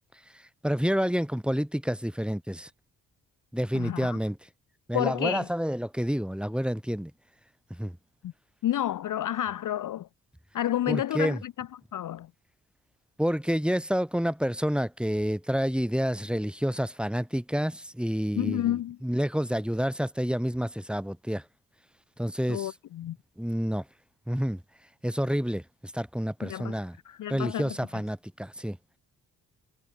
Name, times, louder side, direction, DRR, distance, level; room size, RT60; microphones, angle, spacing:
voice 1, 0.3-2.7 3.5-4.4 4.9-7.1 7.7-8.0 10.9-11.4 13.2-21.4 22.2-22.7 23.4-23.8 24.3-24.6 25.0-27.0 27.3-28.8, equal, ahead, 2.0 m, -29 dB
voice 2, 3.7-4.2 4.9-5.5 8.2-8.3 8.6-10.1 10.5-11.7 11.9-12.3 18.4-19.0 22.5-23.2 26.4-26.8 27.1-27.7, left 12 dB, 50° left, 0.6 m, -30 dB
hypercardioid pair, 40°, 42 cm